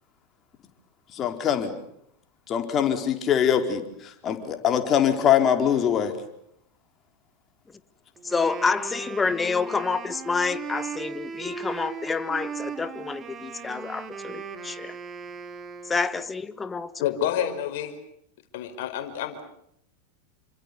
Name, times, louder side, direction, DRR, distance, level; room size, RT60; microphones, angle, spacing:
voice 1, 1.1-1.7 2.5-6.1, left 9 dB, 35° left, 6 dB, 4.5 m, -23 dB
voice 2, 8.2-14.9 15.9-16.9, left 4 dB, 15° left, 13 dB, 1.6 m, -28 dB
Wind instrument woodwind instrument, 8.2-16.3, right 5 dB, 30° right, 3.4 m, -38 dB
voice 3, 17.0-18.0 18.5-19.4, left 10 dB, 60° left, 8 dB, 4.9 m, -28 dB
28.5 x 25.5 x 7.0 m, 0.74 s
hypercardioid pair, 95°, 0 cm